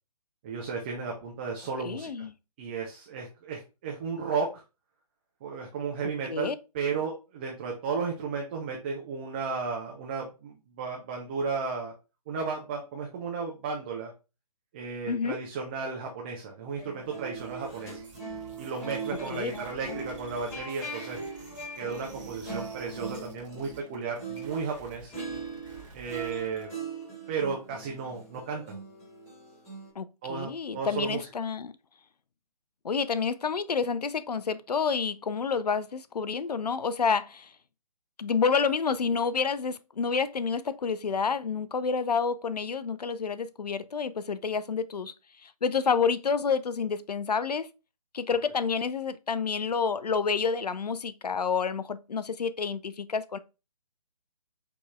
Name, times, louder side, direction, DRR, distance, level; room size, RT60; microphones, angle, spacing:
voice 1, 0.4-2.3 2.6-4.6 5.4-6.5 6.7-11.9 12.3-14.1 14.7-18.0 18.6-21.2 21.8-25.1 25.9-26.7 27.3-28.8 30.2-31.3, right 5 dB, 15° right, 0.4 m, -34 dB
voice 2, 1.8-2.3 6.3-6.6 15.1-15.4 19.3-19.5 30.0-31.7 32.8-37.5 38.2-45.1 45.4-47.7 48.1-53.4, left 5 dB, 80° left, 0.4 m, -29 dB
sound 1, 16.7-24.7 25.1-29.9, right 3 dB, 10° left, 1.8 m, -40 dB
sound 2, 16.7-26.7, right 4 dB, 50° right, 1.3 m, -52 dB
4.8 x 2.9 x 2.3 m
figure-of-eight pair, 140°, 20 cm